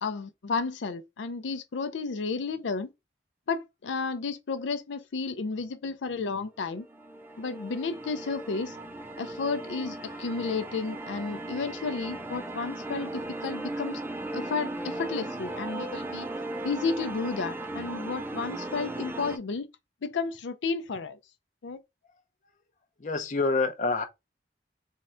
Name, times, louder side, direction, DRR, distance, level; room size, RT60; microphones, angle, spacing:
voice 1, 0.0-2.9 3.5-6.9 7.4-8.8 9.2-14.0 14.3-16.3 16.6-19.7 20.0-21.2 21.6-21.8, left 4 dB, 85° left, 0.5 m, -32 dB
sound 1, 6.6-19.4, right 2 dB, 10° right, 0.4 m, -37 dB
voice 2, 23.0-24.0, left 3 dB, 40° left, 0.6 m, -27 dB
3.6 x 2.2 x 4.2 m
head